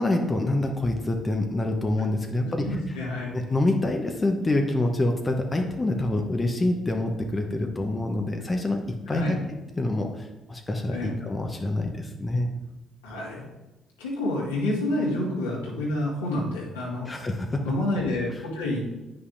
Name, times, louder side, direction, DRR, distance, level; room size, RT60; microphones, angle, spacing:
voice 1, 0.0-2.7 3.3-8.8 9.1-9.4 9.8-12.5 17.1-17.7, left 2 dB, 25° left, 3 dB, 1.0 m, -26 dB
voice 2, 2.4-3.3 9.1-9.4 10.9-11.2 13.0-13.4 14.0-17.2 17.6-18.8, left 1 dB, 85° left, -5 dB, 1.9 m, -28 dB
9.5 x 5.7 x 2.7 m, 1.0 s
hypercardioid pair, 45°, 0 cm